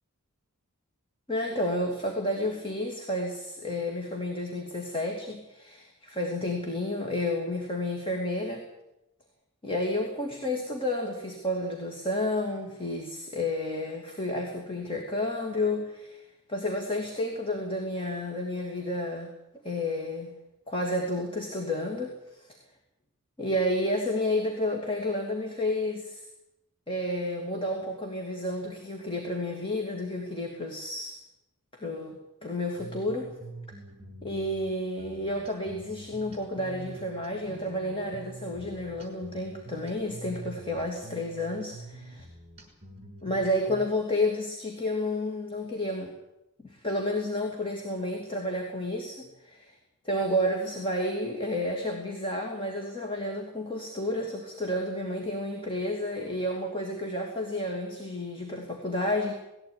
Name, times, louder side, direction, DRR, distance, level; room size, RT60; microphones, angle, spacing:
voice 1, 1.3-8.6 9.6-16.2 16.5-19.3 19.6-20.3 20.7-22.6 23.4-26.2 26.9-31.2 31.7-33.3 34.2-42.2 43.2-46.1 46.6-49.7 50.0-59.3, left 1 dB, 25° left, 1 dB, 2.9 m, -31 dB
sound 1, 32.8-43.9, right 2 dB, 30° right, 5.7 m, -46 dB
19.5 x 16.0 x 9.7 m, 0.90 s
head